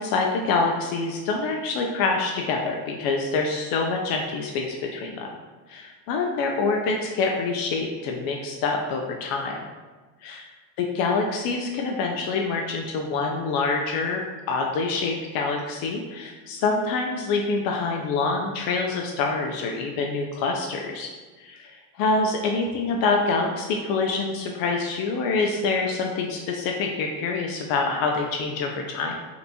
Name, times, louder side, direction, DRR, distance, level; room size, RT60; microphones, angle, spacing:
voice 1, 0.0-5.3 5.7-9.5 10.2-10.4 10.8-14.2 14.5-21.1 21.4-29.2, left 4 dB, 50° left, 1 dB, 0.5 m, -26 dB
3.4 x 2.9 x 2.6 m, 1.3 s
supercardioid pair, 105°, 48 cm